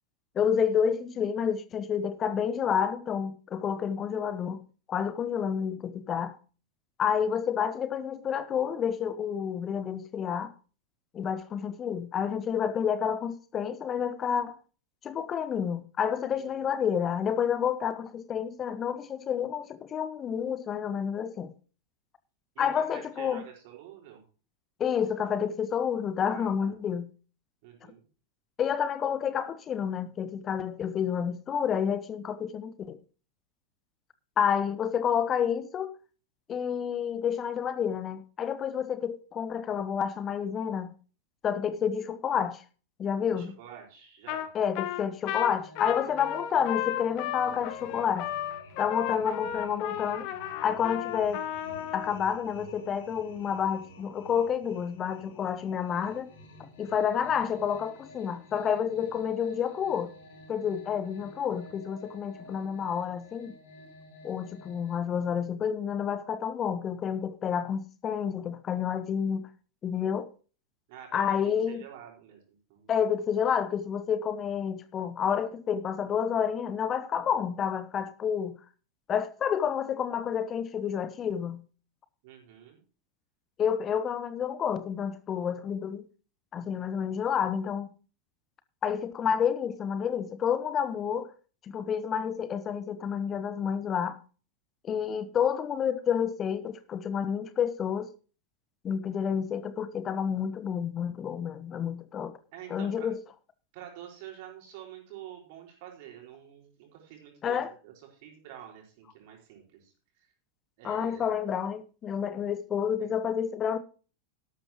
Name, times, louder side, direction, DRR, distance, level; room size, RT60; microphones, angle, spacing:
voice 1, 0.3-4.6 4.9-6.3 7.0-10.5 11.1-14.6 15.0-21.5 22.6-23.4 24.8-27.0 28.6-33.0 34.4-35.9 36.5-40.9 41.4-42.6 43.0-43.5 44.5-48.3 48.8-51.4 51.9-56.3 56.6-60.1 60.5-63.5 64.2-69.5 69.8-70.3 71.1-71.8 72.9-78.5 79.1-81.6 83.6-86.1 86.5-87.9 88.8-91.3 91.6-94.2 94.8-98.1 98.8-102.3 102.7-103.2 107.4-107.7 110.8-113.8, left 8 dB, 25° left, 1.0 m, -29 dB
voice 2, 16.3-16.7 22.5-24.2 26.3-26.7 27.6-28.0 43.3-44.5 58.9-59.0 70.9-72.9 82.2-82.8 102.5-103.1 103.7-110.3 110.8-111.3 113.0-113.1, right 10 dB, 50° right, 4.9 m, -48 dB
Trumpet, 44.3-44.5 44.7-52.1, left 12 dB, 45° left, 1.3 m, -34 dB
sound 1, 45.4-65.0, left 1 dB, 60° left, 6.5 m, -51 dB
13.5 x 12.0 x 3.0 m
figure-of-eight pair, 90°, 0 cm